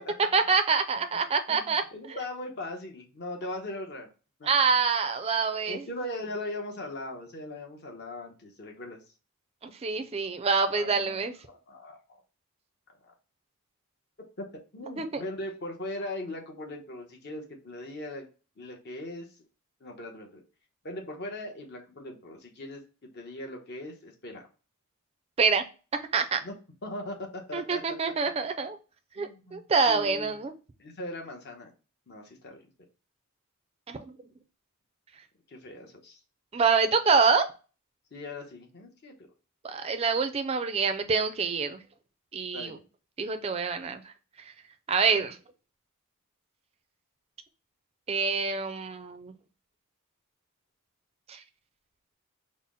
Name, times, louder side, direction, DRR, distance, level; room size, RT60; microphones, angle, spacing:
voice 1, 0.3-1.8 4.4-5.8 9.6-11.3 15.0-15.2 25.4-25.6 26.1-26.4 27.5-28.8 29.2-30.5 33.9-34.0 36.5-37.4 39.6-41.8 42.3-42.7 43.2-44.1 44.9-45.4 48.1-49.3 51.3-51.4, right 5 dB, 25° right, 8 dB, 0.4 m, -26 dB
voice 2, 1.5-4.1 4.4-4.6 5.7-9.0 10.7-12.2 13.0-13.1 14.4-14.5 14.7-18.3 18.6-19.3 19.8-20.4 20.8-24.4 26.4-26.5 26.8-27.8 29.2-30.4 30.8-31.7 32.1-32.6 35.5-36.2 38.1-39.1 42.5-42.7 45.1-45.3, left 1 dB, 50° left, 2 dB, 0.8 m, -39 dB
4.1 x 2.0 x 3.6 m, 0.34 s
head